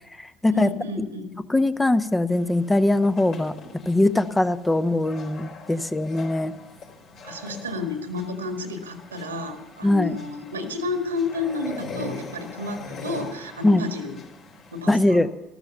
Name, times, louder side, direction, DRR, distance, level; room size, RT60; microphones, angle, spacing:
voice 1, 0.5-1.4 7.2-14.2 14.7-15.2, left 3 dB, 85° right, 7 dB, 1.8 m, -31 dB
voice 2, 1.5-3.5 3.9-6.6 9.8-10.2 13.6-13.8 14.9-15.3, left 2 dB, 15° left, 11 dB, 0.9 m, -21 dB
sound 1, 2.3-14.9, left 4 dB, 55° left, 4.4 m, -42 dB
14.0 x 13.0 x 6.9 m, 0.91 s
figure-of-eight pair, 60°, 0 cm